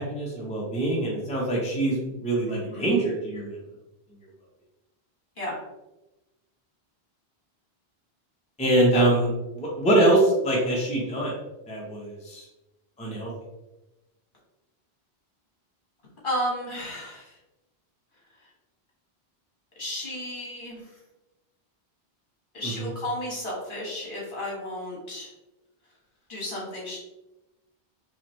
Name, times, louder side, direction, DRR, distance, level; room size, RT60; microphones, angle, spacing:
voice 1, 0.0-3.5 8.6-9.3 9.6-11.3 11.7-12.4 13.0-13.3 22.8-22.9, right 1 dB, 5° left, -4 dB, 0.8 m, -24 dB
voice 2, 2.5-2.9 5.4-5.6 8.9-9.0 16.2-17.4 19.8-21.0 22.5-25.3 26.3-27.0, left 1 dB, 55° left, -5 dB, 1.6 m, -33 dB
3.9 x 3.0 x 3.0 m, 1.0 s
omnidirectional pair, 1.1 m